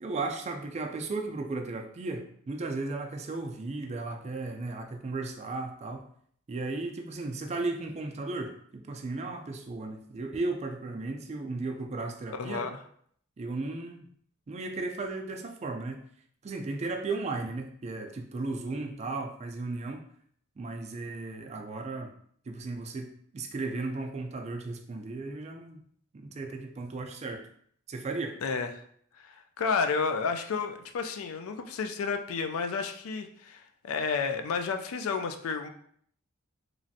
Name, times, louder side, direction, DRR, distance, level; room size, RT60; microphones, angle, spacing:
voice 1, 0.0-6.0 6.5-12.7 13.4-14.0 14.5-16.1 16.4-20.0 20.6-22.1 22.5-25.8 26.1-27.5 27.9-28.4, right 3 dB, 30° right, 4 dB, 0.3 m, -35 dB
voice 2, 12.3-12.8 28.4-28.7 29.2-35.7, left 5 dB, 85° left, 7 dB, 0.3 m, -31 dB
3.1 x 2.5 x 2.6 m, 0.63 s
head